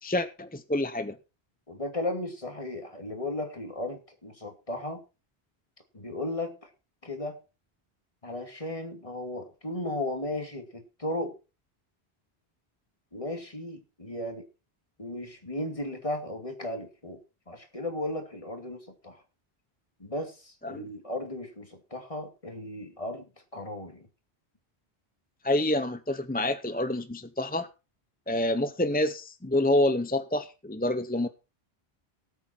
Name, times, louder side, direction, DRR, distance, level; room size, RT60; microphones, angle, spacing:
voice 1, 0.0-1.2 20.6-20.9 25.4-27.7 28.3-31.3, left 1 dB, 10° left, 10 dB, 0.6 m, -27 dB
voice 2, 1.7-5.0 5.9-6.7 7.0-7.4 8.2-11.4 13.1-14.4 15.0-17.2 17.5-19.2 20.0-23.3 23.5-24.1, left 1 dB, 30° left, 5 dB, 2.5 m, -35 dB
18.5 x 8.3 x 4.4 m, 0.31 s
omnidirectional pair, 1.1 m